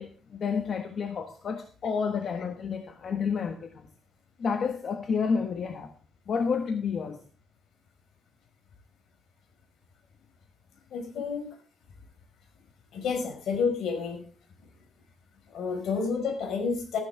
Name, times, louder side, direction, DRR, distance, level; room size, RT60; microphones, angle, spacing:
voice 1, 0.0-3.9 4.4-5.9 6.3-7.2 11.1-11.2, left 6 dB, 55° left, 1.4 m, -30 dB
voice 2, 10.9-11.6 12.9-14.2 15.5-17.0, left 5 dB, 80° left, 4.9 m, -30 dB
14.0 x 12.0 x 3.5 m
cardioid pair, 115°, 0 cm